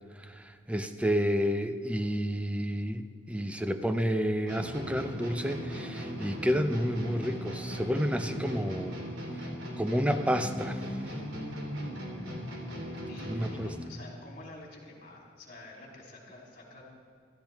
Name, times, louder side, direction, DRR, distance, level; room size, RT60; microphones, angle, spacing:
voice 1, 0.7-9.0 9.8-10.8 13.2-13.7, equal, 5° right, 9 dB, 0.5 m, -30 dB
sound 1, 4.5-13.9, equal, 85° right, 2.7 m, -38 dB
voice 2, 13.1-16.9, left 2 dB, 45° left, -2 dB, 3.3 m, -49 dB
16.0 x 13.5 x 3.5 m, 2.3 s
head